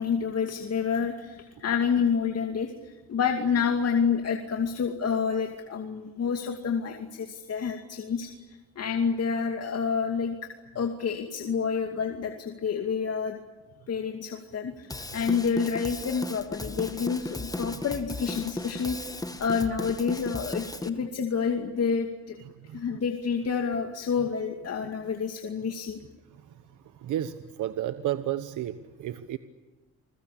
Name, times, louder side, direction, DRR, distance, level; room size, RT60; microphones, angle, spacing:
voice 1, 0.0-10.4 10.7-13.4 13.9-22.4 22.7-26.0, left 6 dB, 55° left, 4 dB, 2.5 m, -28 dB
Drum kit / Drum, 14.9-20.9, left 2 dB, 10° left, 2.1 m, -36 dB
voice 2, 27.0-29.4, right 12 dB, 75° right, 11 dB, 1.2 m, -32 dB
29.0 x 21.5 x 8.6 m, 1.2 s
cardioid pair, 90°, 30 cm